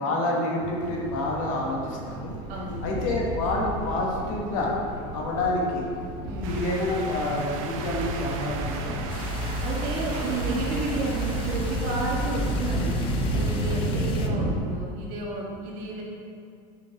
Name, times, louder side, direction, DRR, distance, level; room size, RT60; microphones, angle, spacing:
voice 1, 0.0-2.3 2.8-4.7 5.1-5.9 6.4-9.1, left 2 dB, 65° left, -2 dB, 1.3 m, -28 dB
sound 1, 0.6-14.6, right 1 dB, 20° right, 0.9 m, -31 dB
voice 2, 2.5-2.8 6.2-6.5 9.6-16.0, right 2 dB, 50° right, -3 dB, 1.4 m, -32 dB
sound 2, 6.4-13.9, right 5 dB, 70° right, 0.6 m, -39 dB
sound 3, 9.1-14.3, left 6 dB, 30° left, 0.4 m, -42 dB
6.0 x 5.5 x 3.5 m, 2.3 s
supercardioid pair, 160°, 18 cm